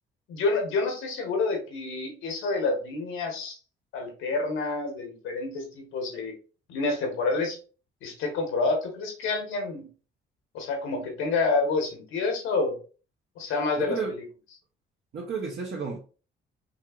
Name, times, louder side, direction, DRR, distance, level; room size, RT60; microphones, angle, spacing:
voice 1, 0.3-3.6 3.9-6.3 6.7-7.6 8.0-9.9 10.5-12.8 13.4-14.0, left 3 dB, 85° left, 1.4 m, -28 dB
voice 2, 13.8-14.1 15.1-16.0, right 5 dB, 60° right, 1.1 m, -32 dB
5.6 x 2.9 x 2.5 m
cardioid pair, 90°, 20 cm